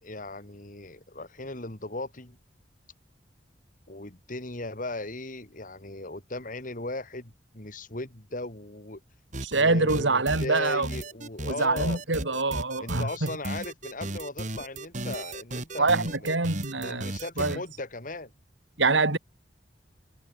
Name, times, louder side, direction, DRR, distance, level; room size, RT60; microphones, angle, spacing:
voice 1, 0.0-2.4 3.9-9.0 9.5-12.4 12.8-16.3 16.7-18.3, left 2 dB, 45° left, 2.8 m, -37 dB
sound 1, 9.3-9.6 9.9-17.6, right 2 dB, 40° right, 2.9 m, -35 dB
voice 2, 9.4-10.9 11.5-13.3 15.8-17.6 18.8-19.2, right 3 dB, 80° right, 2.5 m, -25 dB
head